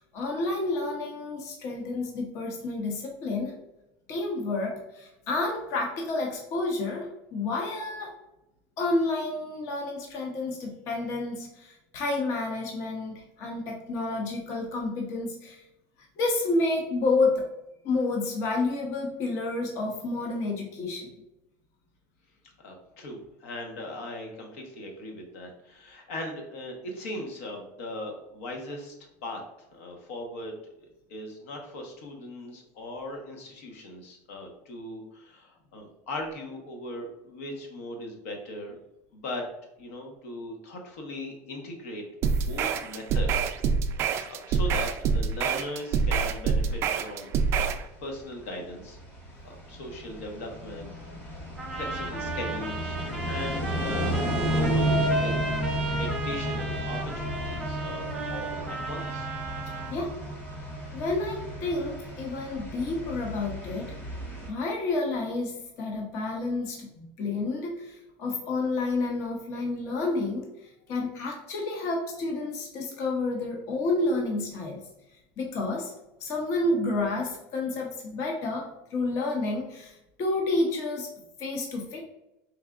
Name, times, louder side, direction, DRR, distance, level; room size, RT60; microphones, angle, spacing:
voice 1, 0.0-3.5 4.1-8.2 8.8-15.6 16.2-17.5 17.8-21.1 59.9-60.2 60.9-63.9 64.5-74.8 75.4-75.9 76.2-81.1 81.4-82.0, left 2 dB, 40° left, 0 dB, 0.7 m, -30 dB
voice 2, 22.6-28.9 29.2-29.4 29.7-30.6 31.1-38.8 39.1-39.4 39.8-42.0 42.4-43.5 44.0-47.3 48.0-49.0 49.4-50.9 51.7-55.4 56.0-59.3, left 1 dB, 85° left, 2 dB, 1.1 m, -39 dB
sound 1, 42.2-47.8, right 5 dB, 35° right, 0.3 m, -26 dB
sound 2, 47.9-64.5, equal, 20° left, 1.0 m, -32 dB
sound 3, 51.6-59.9, right 3 dB, ahead, 0.8 m, -35 dB
4.7 x 3.5 x 2.4 m, 0.89 s
cardioid pair, 160°, 8 cm